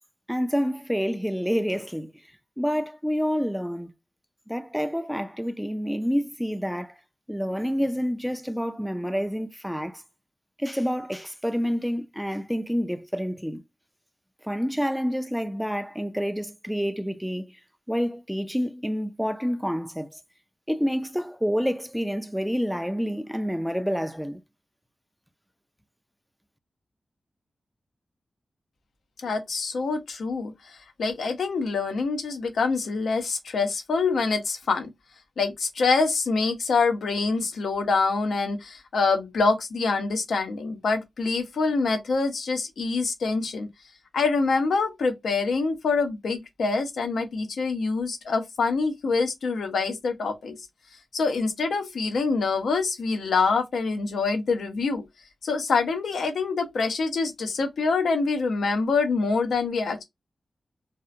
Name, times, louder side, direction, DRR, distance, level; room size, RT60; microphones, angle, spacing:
voice 1, 0.3-2.1 2.6-3.9 4.5-6.9 7.3-10.0 10.6-13.6 14.4-17.5 17.9-20.2 20.7-24.4, equal, ahead, 0.3 m, -28 dB
voice 2, 29.2-30.5 31.0-34.9 35.4-43.7 44.1-50.6 51.1-55.0 55.4-60.0, left 4 dB, 85° left, 0.5 m, -25 dB
2.7 x 2.0 x 2.4 m
cardioid pair, 65°, 0 cm